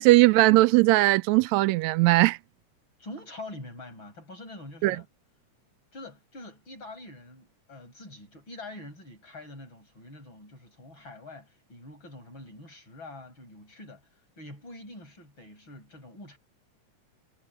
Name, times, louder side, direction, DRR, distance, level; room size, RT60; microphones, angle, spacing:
voice 1, 0.0-2.4 4.8-5.0, right 20 dB, 80° right, 1.8 m, -19 dB
voice 2, 3.0-5.1 5.9-16.4, left 2 dB, 40° left, 8.4 m, -45 dB
omnidirectional pair, 3.4 m